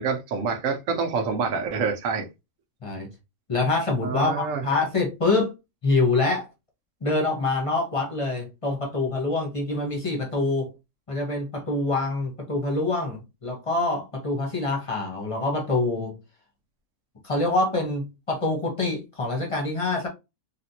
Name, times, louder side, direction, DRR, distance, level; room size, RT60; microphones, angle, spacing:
voice 1, 0.0-2.3 4.0-4.6, right 5 dB, 70° right, 1.1 m, -26 dB
voice 2, 3.5-5.5 5.8-6.5 7.0-10.7 11.1-16.2 17.2-20.1, left 3 dB, 25° left, 1.0 m, -25 dB
3.5 x 2.5 x 2.7 m
omnidirectional pair, 1.5 m